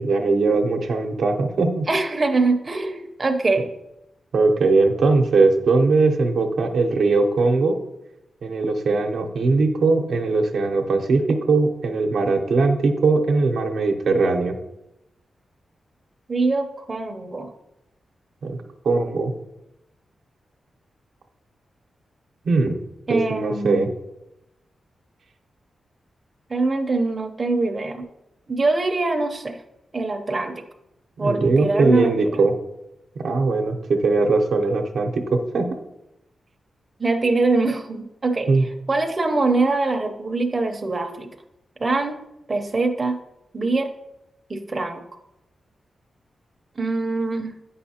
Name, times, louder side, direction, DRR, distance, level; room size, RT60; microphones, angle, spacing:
voice 1, 0.0-1.9 4.3-7.8 8.4-14.5 18.4-18.6 18.8-19.3 22.5-22.8 23.1-23.9 31.2-32.5 33.2-35.7 38.5-38.7, right 3 dB, 80° right, 3 dB, 0.7 m, -20 dB
voice 2, 1.9-3.7 16.3-17.5 23.1-23.8 26.5-28.0 28.5-29.6 29.9-30.6 31.2-32.3 37.0-41.3 41.8-42.2 42.5-43.2 43.5-43.9 44.5-45.0 46.8-47.5, right 3 dB, 30° right, 4 dB, 0.6 m, -23 dB
8.4 x 5.5 x 2.8 m, 0.89 s
wide cardioid pair, 100°, 0 cm